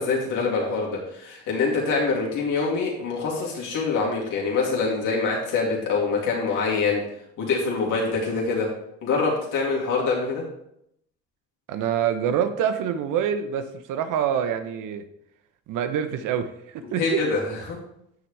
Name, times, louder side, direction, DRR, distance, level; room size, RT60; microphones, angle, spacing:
voice 1, 0.0-7.0 7.4-8.7 9.0-10.4 16.8-17.8, left 4 dB, 70° left, -2 dB, 2.8 m, -25 dB
voice 2, 11.7-13.6 13.9-15.0 15.7-17.2, right 9 dB, 65° right, 9 dB, 0.9 m, -26 dB
9.1 x 6.8 x 3.3 m, 0.76 s
hypercardioid pair, 55°, 33 cm